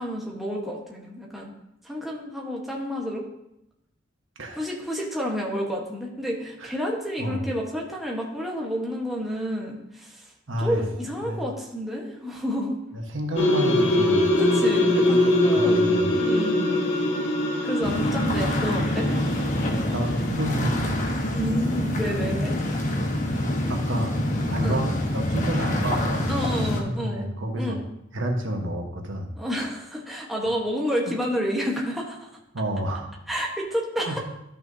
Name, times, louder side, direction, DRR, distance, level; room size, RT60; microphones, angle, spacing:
voice 1, 0.0-1.5 1.8-3.3 4.5-10.2 10.5-12.7 14.4-16.8 17.6-19.1 21.3-22.5 24.6-24.8 26.3-27.2 27.6-27.9 29.4-32.3 33.3-34.2, equal, ahead, -3 dB, 1.1 m, -30 dB
voice 2, 10.5-10.8 11.2-11.4 12.9-14.4 15.5-16.1 19.9-21.2 23.7-24.1 24.5-27.8 28.1-29.3 31.1-31.2 32.5-33.1 34.1-34.2, right 1 dB, 75° right, 3 dB, 1.2 m, -30 dB
sound 1, 13.4-20.5, left 1 dB, 75° left, 1.5 m, -23 dB
sound 2, 17.8-26.8, left 1 dB, 40° left, 1.1 m, -26 dB
12.5 x 5.8 x 2.7 m, 0.83 s
head